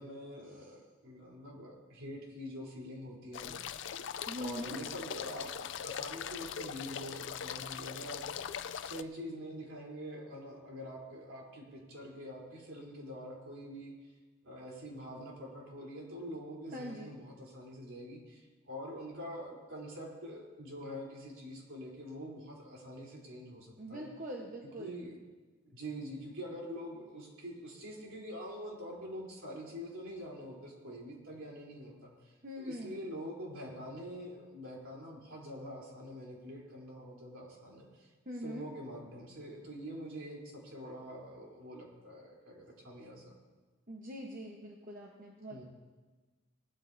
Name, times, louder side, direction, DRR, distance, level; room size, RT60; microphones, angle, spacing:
voice 1, 0.0-3.9 4.2-14.1 14.4-24.1 24.8-25.2 25.7-38.1 38.4-43.4 45.5-45.6, equal, 75° right, -3 dB, 3.6 m, -45 dB
sound 1, 3.3-9.0, left 8 dB, 60° left, 0.4 m, -41 dB
voice 2, 4.2-4.8 16.7-17.2 23.8-25.0 32.4-32.9 38.3-38.7 43.9-45.6, equal, 40° right, -1 dB, 1.1 m, -43 dB
18.5 x 13.0 x 2.7 m, 1.3 s
head